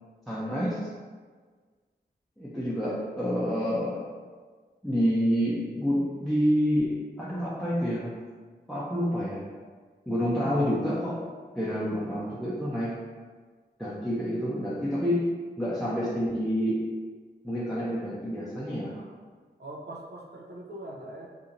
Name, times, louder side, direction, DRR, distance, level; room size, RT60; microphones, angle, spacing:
voice 1, 0.3-0.9 2.4-4.1 4.8-8.1 8.7-9.4 10.1-11.2 11.6-13.0 13.8-15.2 15.6-16.8 17.4-18.9, equal, ahead, -9 dB, 0.7 m, -28 dB
voice 2, 2.5-3.3 18.9-19.1 19.6-21.3, right 1 dB, 65° right, -1 dB, 0.7 m, -42 dB
2.7 x 2.7 x 3.8 m, 1.5 s
cardioid pair, 40°, 19 cm